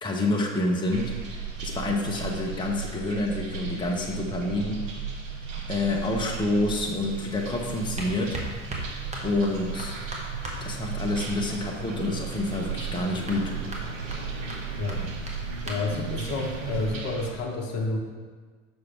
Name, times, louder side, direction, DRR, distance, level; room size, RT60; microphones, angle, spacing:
voice 1, 0.0-4.8 5.7-8.4 9.2-9.9 10.6-13.5 16.0-16.1, left 2 dB, 10° left, -1 dB, 1.0 m, -28 dB
sound 1, 0.9-17.3, right 5 dB, 75° right, 1.0 m, -35 dB
sound 2, 7.1-16.9, right 1 dB, 15° right, 1.5 m, -42 dB
voice 2, 15.6-18.0, left 3 dB, 40° left, 2 dB, 1.1 m, -30 dB
6.3 x 6.2 x 3.6 m, 1.5 s
figure-of-eight pair, 80°, 39 cm